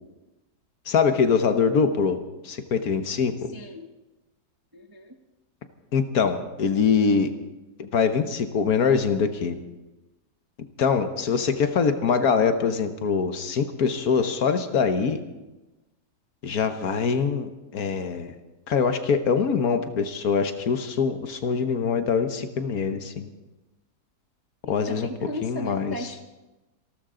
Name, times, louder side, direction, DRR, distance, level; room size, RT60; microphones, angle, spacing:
voice 1, 0.9-2.2 2.4-3.5 5.9-7.3 7.8-9.6 10.8-15.2 16.4-18.3 18.7-23.3 24.7-25.1 25.4-25.9, left 6 dB, 60° left, 8 dB, 1.5 m, -23 dB
voice 2, 3.5-3.9 4.7-5.2 24.6-26.2, left 1 dB, 20° right, 4 dB, 0.7 m, -36 dB
27.0 x 12.5 x 3.8 m, 1.1 s
omnidirectional pair, 1.8 m